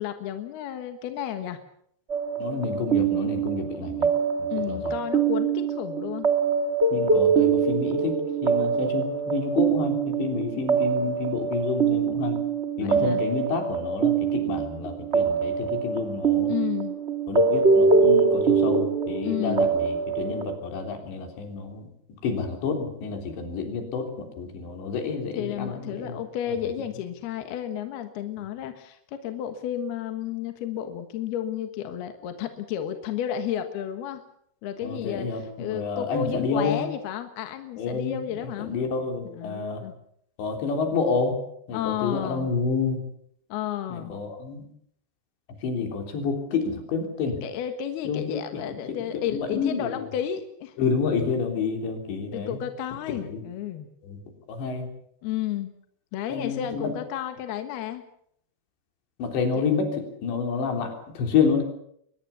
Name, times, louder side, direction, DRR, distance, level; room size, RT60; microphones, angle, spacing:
voice 1, 0.0-1.6 4.5-6.3 12.8-13.2 16.5-17.0 19.2-19.7 25.4-34.2 34.6-38.7 39.4-39.9 41.7-42.5 43.5-44.1 47.4-50.7 52.3-53.9 55.2-55.7 56.1-58.0 59.5-59.7, left 10 dB, 70° left, 7 dB, 3.3 m, -32 dB
sound 1, 2.1-20.6, right 5 dB, 55° right, 0.7 m, -24 dB
voice 2, 2.4-4.1 4.7-5.0 6.9-12.4 12.8-16.5 17.3-21.9 22.2-26.2 26.5-26.6 34.8-36.8 37.8-38.2 38.4-39.9 40.4-41.4 41.7-43.0 43.9-44.6 45.6-47.4 48.1-48.4 48.9-50.1 50.8-52.6 53.1-53.4 54.0-54.2 54.5-54.9 56.3-56.9 59.2-61.6, left 5 dB, 90° left, 4 dB, 5.8 m, -29 dB
23.5 x 20.5 x 7.1 m, 0.69 s
omnidirectional pair, 5.0 m